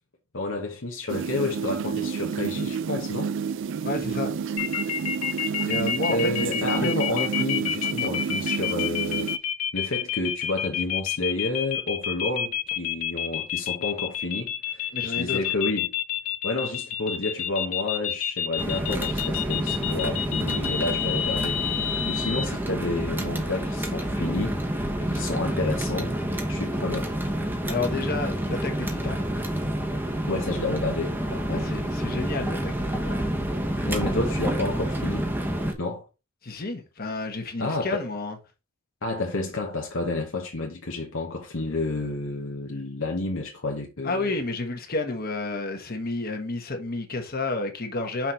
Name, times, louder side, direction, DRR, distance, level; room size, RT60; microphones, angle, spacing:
voice 1, 0.3-3.3 6.1-9.3 9.7-15.9 16.4-26.1 26.5-27.1 30.2-31.8 33.9-35.3 35.8-36.0 37.6-38.0 39.0-44.3, left 2 dB, 60° left, 1.1 m, -30 dB
sound 1, 1.1-9.4, right 6 dB, 55° right, 0.3 m, -30 dB
voice 2, 3.8-4.3 5.6-6.9 14.9-15.5 27.7-29.2 31.5-33.3 36.4-38.4 44.0-48.3, left 2 dB, 45° left, 1.4 m, -30 dB
sound 2, 4.6-22.4, left 10 dB, 85° left, 0.8 m, -29 dB
sound 3, 18.6-35.7, right 1 dB, 10° right, 1.0 m, -28 dB
5.9 x 4.2 x 4.4 m
head